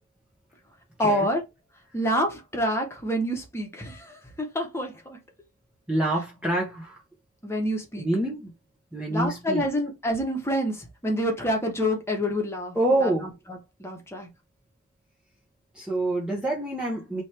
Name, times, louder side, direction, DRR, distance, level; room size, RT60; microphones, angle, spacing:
voice 1, 1.0-1.4 1.9-5.2 7.4-8.1 9.1-10.8 11.0-12.8 13.0-13.1 13.8-14.3, equal, 10° left, 1.2 m, -27 dB
voice 2, 5.9-7.0 8.0-8.5 8.9-9.7 12.7-13.3 15.7-17.2, right 1 dB, 5° right, 0.9 m, -26 dB
3.1 x 3.1 x 4.3 m
head